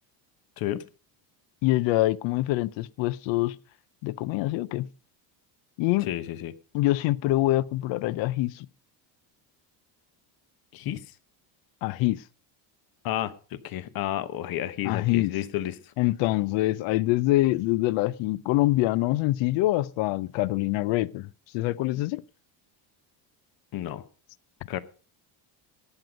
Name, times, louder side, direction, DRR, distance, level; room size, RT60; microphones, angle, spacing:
voice 1, 1.6-3.6 4.0-4.9 5.8-6.1 6.7-8.7 11.8-12.2 14.8-15.3 16.0-22.2, left 17 dB, 70° left, 0.7 m, -25 dB
voice 2, 6.1-6.5 10.7-11.0 13.0-15.9 23.7-24.0 24.7-24.8, left 12 dB, 50° left, 1.0 m, -31 dB
17.0 x 8.0 x 5.1 m
cardioid pair, 155°, 46 cm